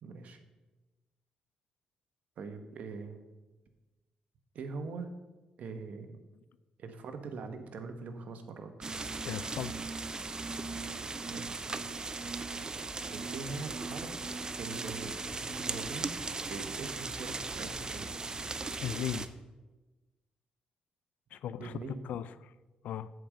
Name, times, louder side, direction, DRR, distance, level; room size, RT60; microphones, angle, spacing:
voice 1, 0.0-0.4 2.4-3.2 4.5-5.1 5.6-6.1 6.8-8.7 11.3-11.6 13.1-14.3 14.6-18.1 21.6-22.1, right 4 dB, 70° right, 7 dB, 1.0 m, -42 dB
sound 1, 8.8-19.3, right 3 dB, 30° right, 0.6 m, -38 dB
voice 2, 9.2-9.7 18.8-19.3 21.3-21.7 22.0-22.5 22.8-23.1, left 10 dB, 80° left, 16 dB, 0.4 m, -37 dB
7.9 x 5.1 x 7.5 m, 1.2 s
cardioid pair, 85°, 3 cm